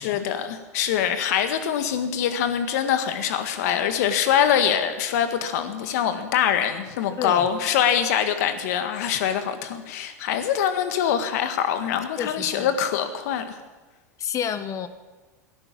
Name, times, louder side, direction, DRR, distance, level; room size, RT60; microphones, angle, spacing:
voice 1, 0.0-13.6, left 9 dB, 70° left, 9 dB, 1.7 m, -24 dB
voice 2, 7.2-7.5 12.2-12.7 14.2-14.9, left 8 dB, 35° left, 13 dB, 1.1 m, -30 dB
13.5 x 11.0 x 8.6 m, 1.2 s
hypercardioid pair, 95°, 9 cm